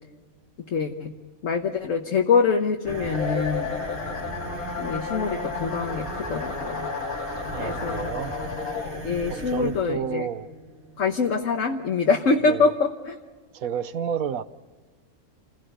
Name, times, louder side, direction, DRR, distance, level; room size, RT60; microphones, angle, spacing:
voice 1, 0.7-1.1 1.4-3.8 4.8-6.9 7.6-8.1 9.0-10.3 11.0-13.2, left 4 dB, 60° left, 1.5 m, -24 dB
sound 1, 2.9-12.5, right 1 dB, 50° right, 3.9 m, -36 dB
sound 2, 3.1-9.3, left 6 dB, 85° left, 2.0 m, -33 dB
voice 2, 7.5-8.3 9.3-10.5 12.5-12.7 13.5-14.4, right 8 dB, 75° right, 1.3 m, -30 dB
28.0 x 16.5 x 6.8 m
omnidirectional pair, 1.5 m